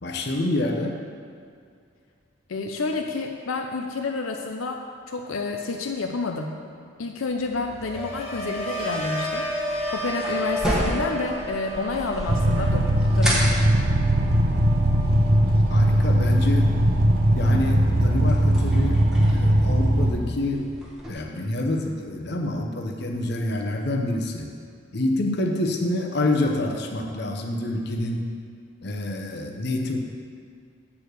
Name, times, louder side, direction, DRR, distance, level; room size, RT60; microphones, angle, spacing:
voice 1, 0.0-1.0 15.7-16.7 17.3-19.0 19.3-20.7 21.1-24.5 24.9-28.3 28.8-30.0, left 1 dB, 55° left, 2 dB, 0.8 m, -27 dB
voice 2, 2.5-4.8 5.1-6.5 7.0-9.5 9.9-12.9 13.1-13.7, left 3 dB, 80° left, 3 dB, 0.6 m, -29 dB
sound 1, 7.4-17.5 17.8-18.3, equal, 30° left, 1.1 m, -33 dB
sound 2, 9.5-21.1, equal, ahead, 1.2 m, -34 dB
sound 3, 12.3-20.1, right 1 dB, 50° right, 0.7 m, -20 dB
8.2 x 4.7 x 6.7 m, 2.3 s
head